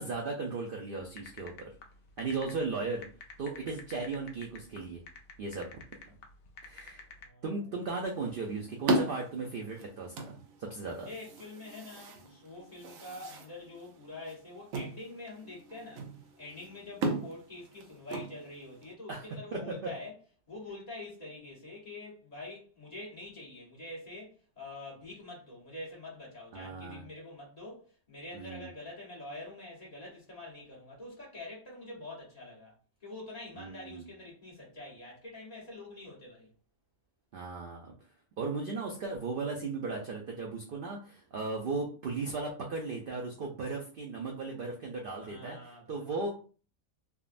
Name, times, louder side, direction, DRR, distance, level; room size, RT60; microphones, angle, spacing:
voice 1, 0.0-1.7 2.2-3.0 3.4-5.0 5.4-5.7 6.1-6.2 6.6-7.1 7.4-11.1 19.1-19.2 19.5-19.9 26.5-27.0 28.3-28.7 33.5-34.1 37.3-37.9 38.4-46.3, right 3 dB, 65° right, 0.5 m, -36 dB
sound 1, 1.0-7.2, left 4 dB, 65° left, 0.8 m, -49 dB
sound 2, 7.8-18.9, right 2 dB, 85° right, 1.0 m, -38 dB
voice 2, 11.0-16.1 16.4-20.1 20.5-32.7 33.0-36.5 45.3-46.1, left 2 dB, 30° left, 1.1 m, -46 dB
3.5 x 2.1 x 2.4 m
omnidirectional pair, 1.4 m